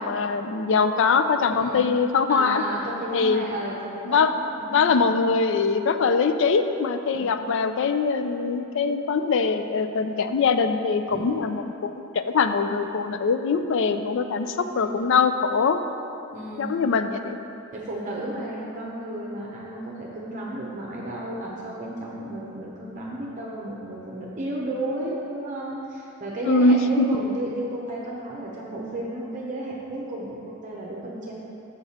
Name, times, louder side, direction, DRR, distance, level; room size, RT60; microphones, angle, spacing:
voice 1, 0.0-2.6 3.1-3.5 4.1-4.3 4.7-15.8 16.6-17.4 26.5-27.1, left 4 dB, 65° left, 9 dB, 0.4 m, -22 dB
voice 2, 1.5-1.8 2.3-5.1 7.1-7.3 11.1-11.2 14.7-15.1 16.3-16.8 17.7-31.3, right 1 dB, 40° right, -4 dB, 0.8 m, -33 dB
6.7 x 6.1 x 4.2 m, 2.9 s
head